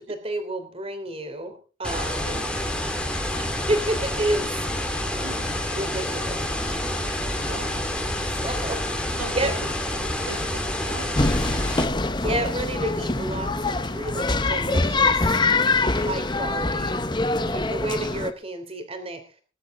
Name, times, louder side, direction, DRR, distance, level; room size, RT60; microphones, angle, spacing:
voice 1, 0.0-2.4 3.3-4.5 5.7-6.4 6.7-6.8 8.4-9.5 12.2-15.2 15.9-17.0 17.5-19.2, right 1 dB, 30° right, 7 dB, 3.2 m, -30 dB
sound 1, 1.8-11.8, left 1 dB, 5° left, 2.4 m, -28 dB
sound 2, 3.7-17.1, equal, 10° right, 3.8 m, -47 dB
voice 2, 5.2-5.6 7.5-7.8 9.2-9.5 10.0-11.8, right 4 dB, 70° right, 7 dB, 1.4 m, -39 dB
sound 3, 11.2-18.3, left 3 dB, 20° left, 0.9 m, -24 dB
20.0 x 11.5 x 3.8 m, 0.35 s
head